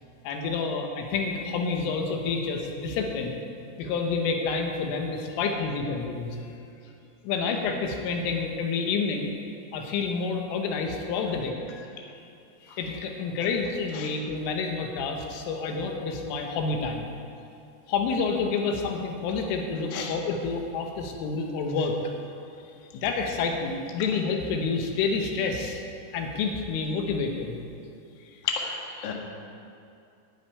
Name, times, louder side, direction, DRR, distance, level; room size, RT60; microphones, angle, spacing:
voice 1, 0.2-3.4 3.8-6.4 7.2-9.3 9.7-11.5 12.7-17.1 17.9-22.0 22.9-25.8 26.1-27.6, left 4 dB, 90° left, 2 dB, 3.8 m, -28 dB
voice 2, 28.4-29.1, left 6 dB, 60° left, 0 dB, 2.8 m, -31 dB
11.0 x 8.1 x 9.7 m, 2.6 s
omnidirectional pair, 5.5 m